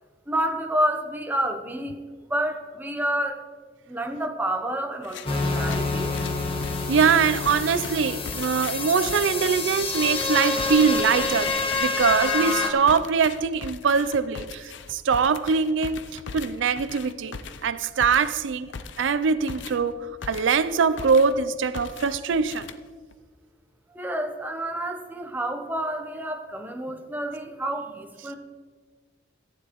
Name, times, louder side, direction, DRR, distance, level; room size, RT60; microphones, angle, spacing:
voice 1, 0.3-2.0 2.3-3.4 3.9-6.1 23.9-28.4, right 1 dB, 10° right, 4 dB, 0.7 m, -29 dB
sound 1, 5.0-5.4 5.7-20.7 21.0-21.4 21.7-23.2, left 5 dB, 80° left, 0.5 m, -40 dB
sound 2, 5.3-12.7, left 3 dB, 30° left, 0.9 m, -27 dB
voice 2, 6.9-11.5 11.8-16.0 16.3-18.7 19.0-22.7, right 5 dB, 85° right, 14 dB, 0.4 m, -23 dB
14.5 x 9.8 x 3.0 m, 1.5 s
head